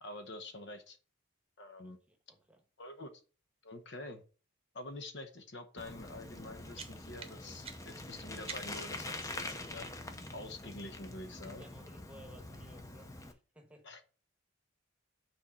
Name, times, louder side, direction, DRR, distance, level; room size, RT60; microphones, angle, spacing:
voice 1, 0.0-1.0 1.6-2.0 2.8-3.1 3.6-4.2 4.7-9.9 10.3-11.6 13.8-14.0, left 2 dB, 55° left, 0.9 m, -47 dB
voice 2, 1.8-2.6 11.5-14.0, equal, 5° right, 1.2 m, -58 dB
Bicycle, 5.8-13.3, left 2 dB, 15° left, 0.6 m, -45 dB
sound 1, 6.7-9.0, right 6 dB, 30° right, 0.9 m, -50 dB
6.3 x 4.3 x 6.2 m
head